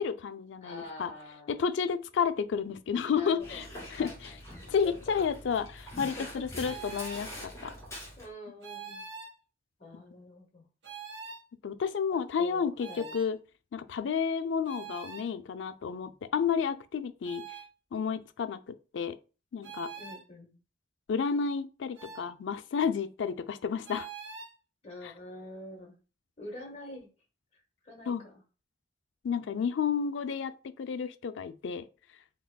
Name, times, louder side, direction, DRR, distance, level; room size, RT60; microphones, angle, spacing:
voice 1, 0.0-1.1 1.5-3.6 3.9-4.1 4.7-7.7 11.6-13.4 13.7-17.4 17.9-19.2 19.5-19.9 21.1-24.1 25.0-25.1 28.1-28.2 29.2-31.9, left 6 dB, 80° left, 0.4 m, -31 dB
voice 2, 0.6-1.6 3.1-3.6 4.0-4.6 4.8-5.0 6.2-6.9 8.2-9.1 9.8-10.7 12.1-13.2 20.0-20.6 24.8-26.0 26.4-27.1 27.8-28.4, left 1 dB, 35° left, 1.3 m, -46 dB
Dog, 3.4-8.3, left 1 dB, 15° left, 2.2 m, -44 dB
sound 1, 6.6-7.3 8.6-9.4 10.8-11.4 12.8-13.3 14.7-15.3 17.2-17.7 19.6-20.2 22.0-22.3 23.8-24.5, right 6 dB, 75° right, 0.8 m, -44 dB
4.4 x 3.4 x 2.2 m
head